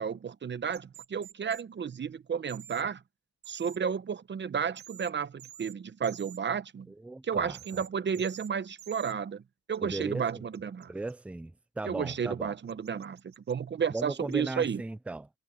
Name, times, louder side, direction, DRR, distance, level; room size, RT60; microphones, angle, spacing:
voice 1, 0.0-3.0 3.5-6.9 7.2-9.4 9.7-10.9 11.8-14.8, right 7 dB, 35° right, 1.0 m, -32 dB
sound 1, 0.7-1.6 2.5-2.8 3.4-3.8 4.8-5.1 5.4-5.7 6.0-6.4 7.5-7.9 8.1-8.5 8.8-9.1 9.7-11.1 12.7-13.5 14.0-14.7, right 12 dB, 65° right, 1.2 m, -49 dB
voice 2, 7.0-7.8 9.8-10.4 10.9-12.6 13.9-15.3, right 2 dB, 5° right, 0.5 m, -37 dB
cardioid pair, 90°, 30 cm